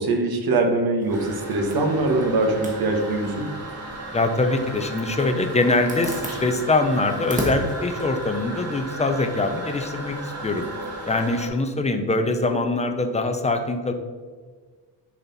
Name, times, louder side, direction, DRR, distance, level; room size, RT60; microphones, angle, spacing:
voice 1, 0.0-3.5, right 2 dB, 60° right, 3 dB, 1.3 m, -22 dB
Zipper (clothing), 1.0-9.2, equal, 20° right, 1.4 m, -37 dB
Toilet flush, 1.1-11.5, right 1 dB, 35° right, 1.5 m, -35 dB
voice 2, 4.1-10.7 11.0-13.9, left 2 dB, 15° left, 6 dB, 0.6 m, -23 dB
10.5 x 4.3 x 4.1 m, 1.5 s
wide cardioid pair, 160°, 42 cm